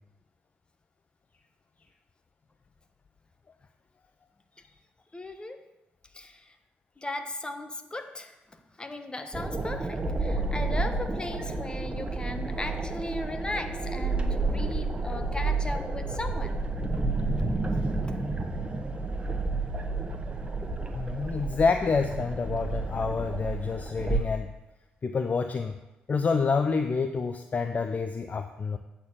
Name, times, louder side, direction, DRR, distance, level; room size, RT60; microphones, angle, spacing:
voice 1, 5.1-5.6 6.1-6.6 7.0-16.7 17.9-18.1, left 2 dB, 20° left, 8 dB, 1.1 m, -37 dB
sound 1, 9.3-24.2, right 3 dB, 25° right, 1.2 m, -30 dB
voice 2, 20.9-24.5 25.0-25.8 26.1-28.8, left 5 dB, 40° left, 8 dB, 0.5 m, -28 dB
8.3 x 4.5 x 7.3 m, 0.99 s
hypercardioid pair, 50°, 4 cm